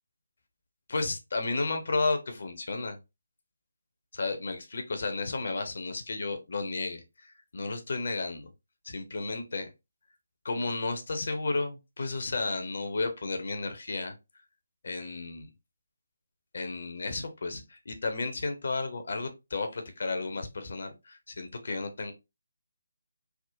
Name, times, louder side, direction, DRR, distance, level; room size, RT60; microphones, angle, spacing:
voice 1, 0.9-3.0 4.1-8.5 8.8-9.7 10.4-14.2 14.8-15.5 16.5-22.1, left 3 dB, 55° left, 0.6 m, -33 dB
3.5 x 2.1 x 2.5 m
figure-of-eight pair, 150°, 0 cm